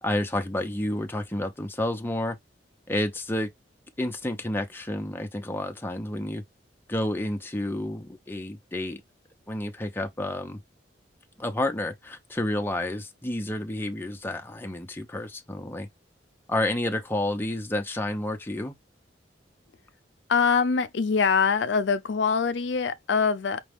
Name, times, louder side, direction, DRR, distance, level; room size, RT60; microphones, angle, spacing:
voice 1, 0.0-2.4 2.9-3.5 4.0-6.4 6.9-9.0 9.5-10.6 11.4-15.9 16.5-18.7, left 1 dB, 10° left, 0.7 m, -30 dB
voice 2, 20.3-23.6, left 5 dB, 80° left, 0.5 m, -23 dB
5.3 x 2.4 x 3.4 m
head